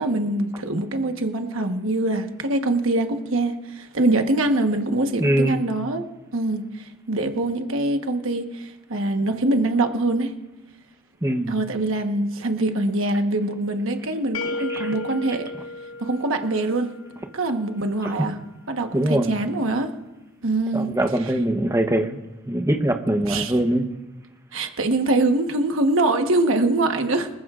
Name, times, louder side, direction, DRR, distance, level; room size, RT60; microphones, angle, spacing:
voice 1, 0.0-6.0 6.3-10.3 11.5-15.5 16.0-16.9 17.3-18.4 18.7-19.9 20.4-20.9 21.2-21.3 23.3-23.6 24.5-27.3, right 2 dB, 90° right, 5 dB, 1.2 m, -23 dB
voice 2, 5.2-5.7 11.2-11.5 14.7-14.9 18.0-18.1 18.9-19.3 20.7-22.2 22.5-23.8, right 1 dB, 15° right, 5 dB, 0.9 m, -22 dB
sound 1, 14.3-17.2, left 3 dB, 85° left, 0.5 m, -33 dB
25.5 x 14.0 x 2.5 m, 1.1 s
head